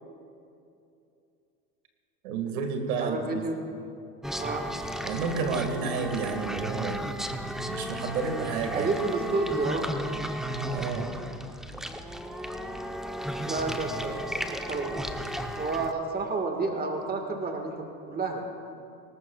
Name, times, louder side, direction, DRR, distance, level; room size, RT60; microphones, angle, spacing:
voice 1, 2.2-3.4 5.0-7.2 7.7-8.9 10.7-11.1, right 5 dB, 80° right, 4 dB, 2.0 m, -30 dB
voice 2, 3.0-3.6 4.4-4.7 8.7-9.9 13.5-14.4 14.7-15.0 15.6-18.4, right 3 dB, 20° right, 3 dB, 1.7 m, -30 dB
sound 1, 4.2-15.9, equal, ahead, 0.7 m, -34 dB
19.0 x 19.0 x 2.4 m, 2.6 s
hypercardioid pair, 90°, 42 cm